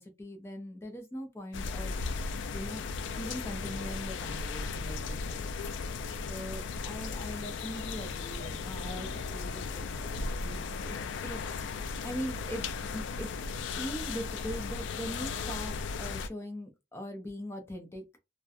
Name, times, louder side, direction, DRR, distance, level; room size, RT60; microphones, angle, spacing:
voice 1, 0.0-2.1 2.5-2.8 3.1-5.5 6.3-13.3 13.6-18.0, equal, 15° left, 0.4 m, -41 dB
sound 1, 1.5-16.3, left 4 dB, 85° left, 0.3 m, -36 dB
2.7 x 2.1 x 2.3 m
head